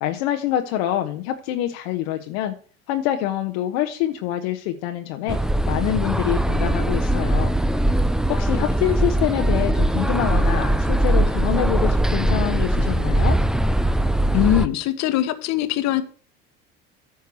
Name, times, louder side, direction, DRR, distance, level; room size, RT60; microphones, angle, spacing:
voice 1, 0.0-2.5 2.9-5.4 5.7-7.5 8.3-13.4, left 12 dB, 75° left, 5 dB, 0.9 m, -25 dB
sound 1, 5.3-14.7, right 1 dB, ahead, 0.5 m, -21 dB
voice 2, 14.3-16.0, left 13 dB, 60° left, 12 dB, 1.2 m, -21 dB
9.5 x 4.6 x 6.9 m, 0.40 s
hypercardioid pair, 80°, 31 cm